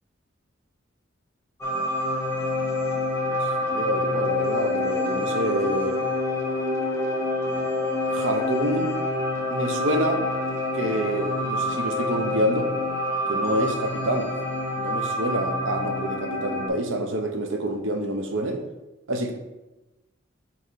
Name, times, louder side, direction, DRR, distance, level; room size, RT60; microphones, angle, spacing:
sound 1, 1.6-16.7, left 1 dB, 15° left, 1.1 m, -27 dB
voice 1, 3.3-6.0 8.1-8.9 9.5-10.2 10.7-12.7 13.3-14.3 14.8-18.6 19.1-19.3, right 1 dB, 90° right, 5 dB, 0.8 m, -27 dB
5.8 x 3.2 x 5.5 m, 1.0 s
head